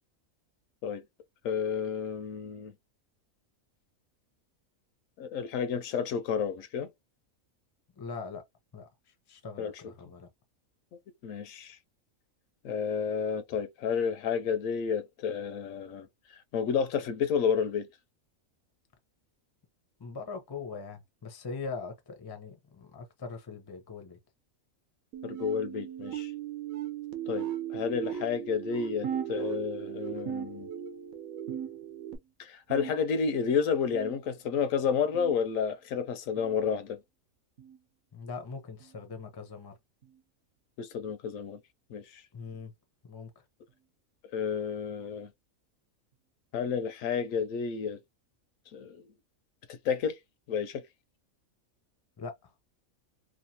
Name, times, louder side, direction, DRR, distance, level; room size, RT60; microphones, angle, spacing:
voice 1, 1.4-2.7 5.2-6.9 9.6-9.8 11.2-11.8 12.6-17.9 25.2-26.3 27.3-30.7 32.4-37.0 40.8-41.6 41.9-42.2 44.3-45.3 46.5-48.0 48.7-49.0 49.7-50.2 50.5-50.8, left 6 dB, 75° left, 1.0 m, -31 dB
voice 2, 8.0-8.4 8.7-8.9 9.3-10.3 20.0-24.2 38.1-39.7 42.3-42.7 43.0-43.3 52.2-52.5, left 4 dB, 30° left, 0.5 m, -41 dB
sound 1, 25.1-32.2, right 11 dB, 85° right, 1.0 m, -38 dB
sound 2, 29.0-29.9 30.3-31.1 31.5-32.1 32.7-33.3 33.9-34.3 35.1-35.4 36.4-36.6 37.6-37.8 38.8-39.0 40.0-40.2 41.2-41.4 42.5-42.6 43.7-43.8, right 8 dB, 55° right, 1.1 m, -39 dB
3.0 x 2.3 x 2.7 m
omnidirectional pair, 1.4 m